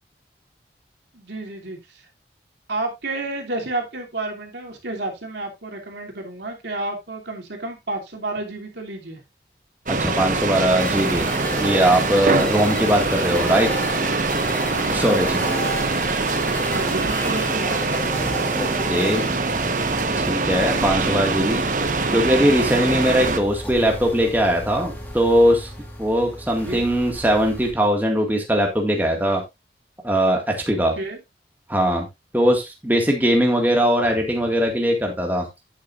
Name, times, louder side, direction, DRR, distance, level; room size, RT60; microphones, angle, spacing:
voice 1, 1.1-1.8 2.7-9.2 12.6-12.7 16.7-18.1 26.6-26.9 30.9-31.2, right 2 dB, 80° right, 1 dB, 2.9 m, -30 dB
sound 1, 9.9-23.4, right 3 dB, 45° right, 1.1 m, -23 dB
voice 2, 10.0-11.3 11.6-13.7 14.9-15.4 18.5-19.3 20.2-21.6 22.1-25.7 26.0-29.4 30.0-30.9 31.7-32.1 32.3-35.5, equal, 10° right, 2 dB, 1.9 m, -20 dB
sound 2, 10.8-27.7, equal, 10° left, 2.6 m, -33 dB
10.5 x 8.9 x 2.5 m, 0.21 s
head